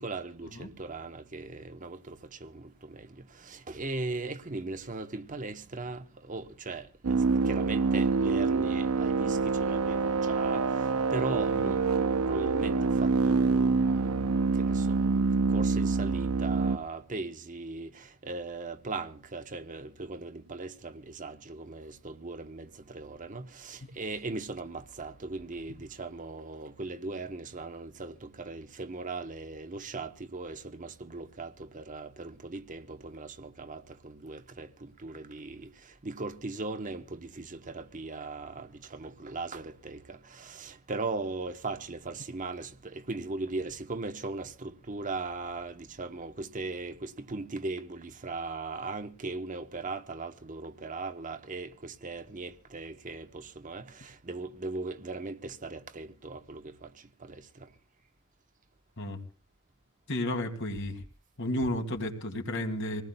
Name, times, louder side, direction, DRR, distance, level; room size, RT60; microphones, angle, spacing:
voice 1, 0.0-3.1 3.4-7.2 7.4-35.7 36.0-56.9 57.2-57.4, right 3 dB, 35° right, 1.0 m, -39 dB
sound 1, 7.0-16.8, right 4 dB, 80° right, 0.7 m, -26 dB
voice 2, 60.1-61.0 61.4-63.0, left 1 dB, 55° left, 2.5 m, -32 dB
26.0 x 19.0 x 2.2 m
head